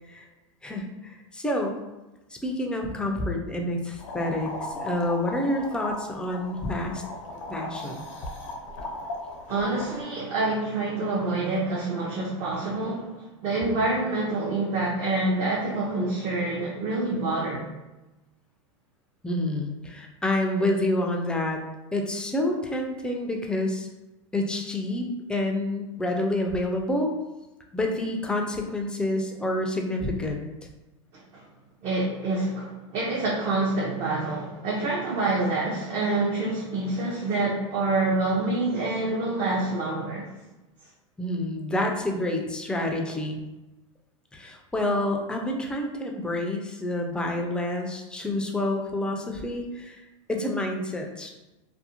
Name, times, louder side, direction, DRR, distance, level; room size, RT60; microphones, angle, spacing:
voice 1, 0.6-1.8 2.4-7.0 7.5-8.0 19.2-21.6 21.9-23.9 24.3-27.1 27.7-30.4 41.2-43.4 44.3-50.0 50.3-51.3, left 1 dB, 5° left, 2 dB, 0.3 m, -28 dB
sound 1, 4.0-10.0, left 1 dB, 80° left, 0.5 m, -37 dB
voice 2, 9.5-17.7 31.1-31.4 31.8-40.2, right 2 dB, 45° right, -5 dB, 0.6 m, -27 dB
2.5 x 2.1 x 2.8 m, 1.0 s
hypercardioid pair, 110°, 16 cm